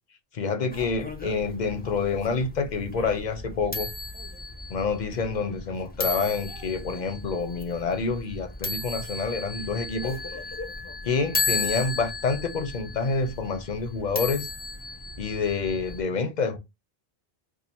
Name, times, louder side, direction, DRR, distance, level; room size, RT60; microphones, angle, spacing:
voice 1, 0.3-3.9 4.7-10.2 11.0-14.5 15.2-16.6, left 4 dB, 50° left, 0.7 m, -28 dB
sound 1, 0.7-16.0, left 3 dB, 10° left, 0.6 m, -35 dB
2.8 x 2.5 x 4.2 m
omnidirectional pair, 1.1 m